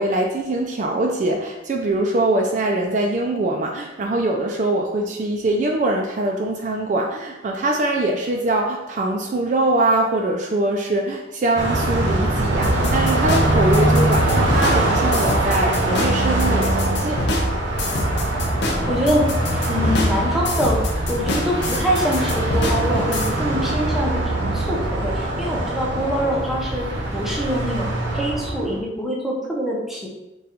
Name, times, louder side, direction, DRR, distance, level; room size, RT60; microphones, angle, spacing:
voice 1, 0.0-17.2, right 2 dB, 40° right, 1 dB, 0.3 m, -22 dB
Car passing by, 11.6-28.8, right 1 dB, 80° right, 0.9 m, -22 dB
sound 1, 12.6-23.3, left 2 dB, 65° left, 0.6 m, -26 dB
voice 2, 18.9-19.3 19.7-20.8 21.1-26.9 27.1-30.1, equal, ahead, -4 dB, 0.6 m, -24 dB
3.7 x 2.3 x 4.2 m, 0.98 s
head